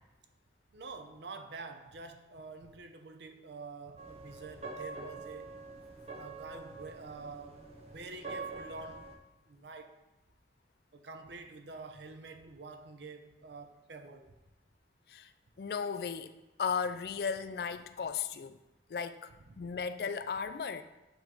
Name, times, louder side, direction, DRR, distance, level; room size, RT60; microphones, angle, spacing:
voice 1, 0.7-5.6 6.2-9.1 9.5-10.0 10.9-14.3 19.5-19.7, right 3 dB, 80° right, 0.6 m, -47 dB
sound 1, 4.0-9.2, right 3 dB, 35° right, 0.7 m, -45 dB
voice 2, 15.6-16.3 16.6-18.5 18.9-19.3 19.6-20.8, left 6 dB, 60° left, 0.3 m, -35 dB
8.1 x 3.1 x 4.7 m
head